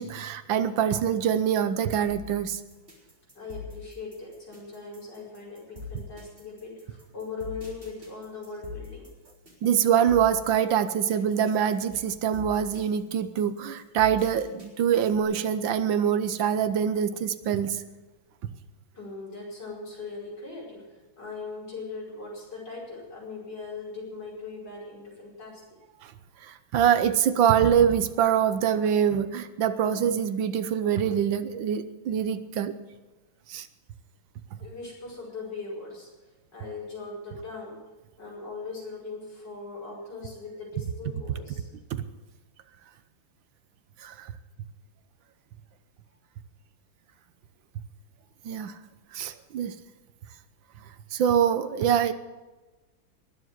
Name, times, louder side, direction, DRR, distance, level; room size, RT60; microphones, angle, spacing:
voice 1, 0.0-2.6 9.6-17.8 26.0-26.1 26.4-32.7 33.5-33.7 44.0-44.3 48.4-48.8 49.1-49.7 51.1-52.1, right 8 dB, 70° right, 12 dB, 1.5 m, -24 dB
sound 1, 2.1-15.2, left 4 dB, 25° right, 4.4 m, -44 dB
voice 2, 3.3-9.1 18.9-20.8 21.2-25.6 34.6-36.1 36.5-37.8 38.2-41.7, left 4 dB, 55° left, -4 dB, 5.9 m, -39 dB
20.5 x 7.5 x 7.9 m, 1.2 s
omnidirectional pair, 2.2 m